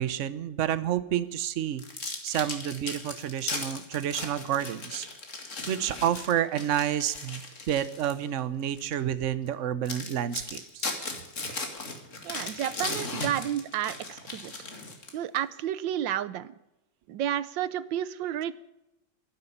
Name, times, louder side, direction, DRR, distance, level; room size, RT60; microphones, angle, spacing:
voice 1, 0.0-1.8 2.2-5.1 5.7-10.9, right 10 dB, 50° right, 14 dB, 1.0 m, -29 dB
sound 1, 1.8-8.2 8.8-8.9 9.5-9.6 9.9-15.4, left 3 dB, 40° left, 2.5 m, -37 dB
voice 2, 12.2-14.5 15.1-16.5 17.1-18.5, right 11 dB, 85° right, 17 dB, 1.4 m, -31 dB
12.0 x 11.0 x 9.9 m, 0.92 s
omnidirectional pair, 2.0 m